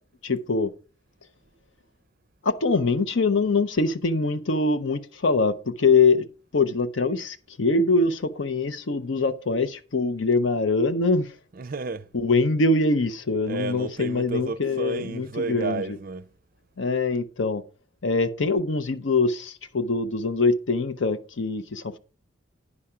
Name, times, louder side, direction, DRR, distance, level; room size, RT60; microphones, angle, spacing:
voice 1, 0.2-0.7 2.4-6.3 6.5-11.3 12.1-15.8 16.8-17.6 18.0-22.0, left 3 dB, 70° left, 0.6 m, -23 dB
voice 2, 11.5-12.1 13.4-16.3, right 3 dB, 45° right, 0.5 m, -32 dB
9.8 x 5.7 x 4.8 m
head